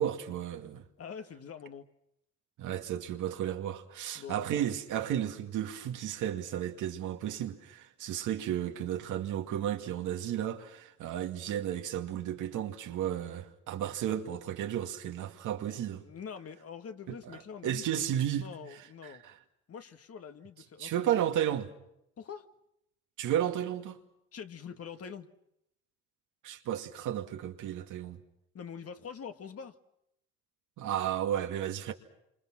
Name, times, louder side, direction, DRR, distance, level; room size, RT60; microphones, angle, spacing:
voice 1, 0.0-0.8 2.6-16.0 17.6-18.5 19.2-19.3 20.8-21.7 23.2-24.0 26.4-28.2 30.8-31.9, right 10 dB, 85° right, 2.4 m, -33 dB
voice 2, 1.0-1.9 4.1-4.5 16.0-19.2 19.7-20.9 22.2-22.5 24.3-25.3 28.5-29.8, left 7 dB, 50° left, 2.0 m, -45 dB
28.5 x 26.0 x 6.2 m
cardioid pair, 90°, 30 cm